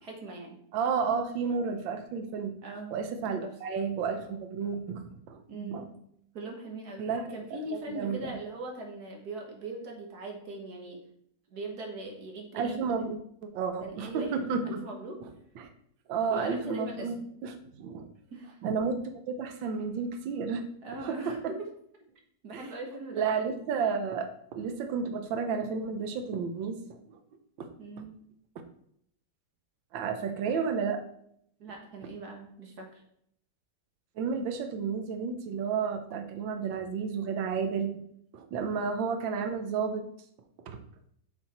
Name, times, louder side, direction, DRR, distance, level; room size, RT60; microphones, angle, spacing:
voice 1, 0.0-0.6 2.6-3.0 3.3-3.5 5.5-6.0 6.3-7.0 7.3-11.0 11.5-12.8 13.8-15.2 16.3-17.3 18.3-18.6 20.8-21.6 22.4-23.3 27.8-28.2 31.6-33.0, right 2 dB, 55° right, 1 dB, 1.8 m, -40 dB
voice 2, 0.7-2.6 2.9-5.9 7.0-7.4 7.7-8.3 12.5-13.2 13.4-14.8 15.6-15.7 16.1-17.2 17.4-18.1 18.6-19.0 19.3-20.7 21.0-21.5 22.5-22.7 23.1-27.0 27.6-27.7 29.9-31.0 34.2-38.0 38.3-40.1 40.7-40.8, right 5 dB, 85° right, 6 dB, 1.5 m, -32 dB
7.7 x 4.4 x 4.2 m, 0.70 s
omnidirectional pair, 2.0 m